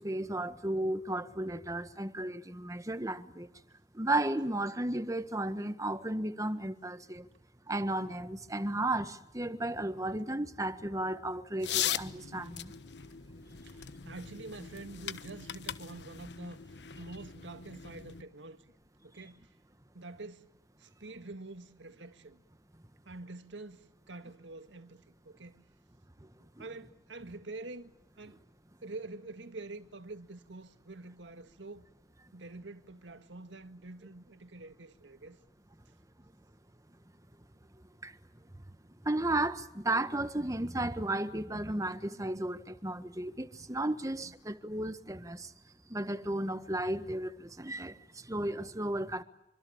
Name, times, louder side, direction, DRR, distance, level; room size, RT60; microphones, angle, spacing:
voice 1, 0.0-3.5 3.9-7.3 7.7-12.7 38.0-38.1 39.0-45.5 45.9-49.2, right 1 dB, 20° right, 1.5 m, -34 dB
sound 1, 11.6-18.2, left 10 dB, 65° left, 1.2 m, -39 dB
voice 2, 13.6-16.6 17.0-18.7 19.0-19.5 19.9-20.5 20.8-22.4 23.1-25.6 26.4-28.4 28.8-31.9 32.3-35.4 44.0-44.3, right 2 dB, 90° right, 1.9 m, -47 dB
26.0 x 25.0 x 8.8 m
head